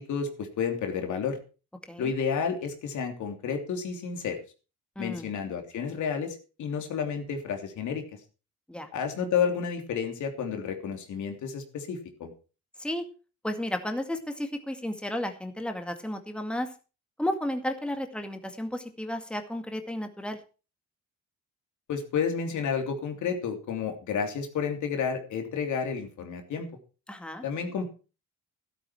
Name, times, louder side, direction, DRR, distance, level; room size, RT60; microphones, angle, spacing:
voice 1, 0.0-1.4 2.0-4.4 5.0-8.0 8.9-12.3 21.9-26.7 27.4-27.9, left 6 dB, 75° left, 5 dB, 3.1 m, -31 dB
voice 2, 5.0-5.3 8.7-8.9 12.8-13.0 13.4-16.7 17.2-20.4 27.1-27.4, left 1 dB, 5° left, 6 dB, 2.1 m, -33 dB
12.5 x 12.5 x 4.4 m, 0.34 s
cardioid pair, 90°, 30 cm